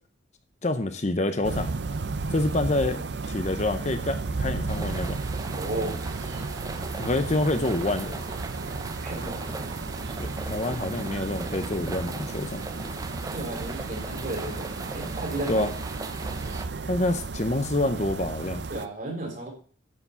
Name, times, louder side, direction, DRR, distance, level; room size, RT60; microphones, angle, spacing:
voice 1, 0.6-1.7 2.3-5.2 7.0-8.2 10.2-12.6 15.5-15.7 16.9-18.6, left 2 dB, 35° left, 9 dB, 0.8 m, -27 dB
sound 1, 1.4-18.9, right 3 dB, 60° right, 0.6 m, -34 dB
sound 2, 4.7-16.7, right 2 dB, 20° right, 0.6 m, -38 dB
voice 2, 5.5-6.0 9.0-9.5 13.3-15.7 18.7-19.5, right 1 dB, 40° right, 1 dB, 3.5 m, -34 dB
9.7 x 4.9 x 7.0 m, 0.43 s
head